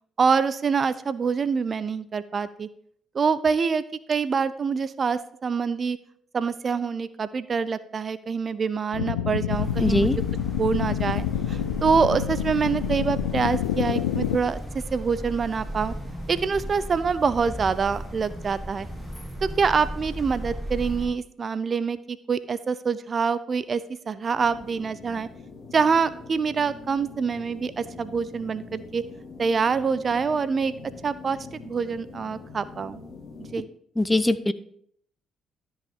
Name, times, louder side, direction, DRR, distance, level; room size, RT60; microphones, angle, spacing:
voice 1, 0.2-2.7 3.1-6.0 6.3-10.1 10.6-15.9 16.3-18.9 19.4-25.3 25.7-29.0 29.4-30.7 31.0-33.0 33.5-33.7, right 5 dB, 45° right, 16 dB, 0.5 m, -25 dB
sound 1, 8.9-14.4, left 12 dB, 80° left, 0.4 m, -28 dB
sound 2, 9.5-21.1, equal, 5° right, 4.2 m, -35 dB
voice 2, 9.8-10.2 34.0-34.5, left 1 dB, 15° left, 14 dB, 0.6 m, -21 dB
sound 3, 24.4-33.5, left 4 dB, 55° left, 2.1 m, -44 dB
13.0 x 5.6 x 3.7 m, 0.65 s
hypercardioid pair, 45°, 0 cm